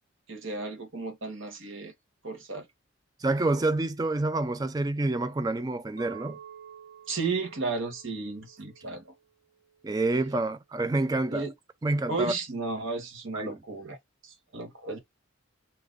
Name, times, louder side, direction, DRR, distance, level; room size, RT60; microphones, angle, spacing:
voice 1, 0.3-1.9 2.2-2.7 7.1-9.1 11.3-11.5 12.1-14.0 14.2-15.0, right 4 dB, 75° right, 1.3 m, -33 dB
voice 2, 3.2-6.4 9.8-11.5 11.8-12.3 13.3-13.6, right 2 dB, 20° right, 0.3 m, -28 dB
Chink clink, 6.0-10.2, right 9 dB, 50° right, 1.1 m, -51 dB
2.9 x 2.5 x 3.6 m
head